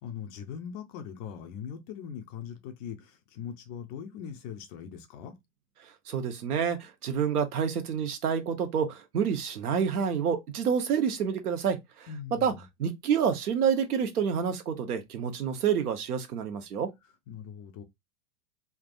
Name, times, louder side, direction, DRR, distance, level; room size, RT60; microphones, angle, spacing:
voice 1, 0.0-5.4 12.1-12.6 17.3-17.8, left 8 dB, 25° left, 0.3 m, -41 dB
voice 2, 6.1-12.1 12.4-12.5 12.8-16.9, right 7 dB, 90° right, 1.1 m, -28 dB
3.8 x 3.4 x 2.5 m
hypercardioid pair, 130°, 43 cm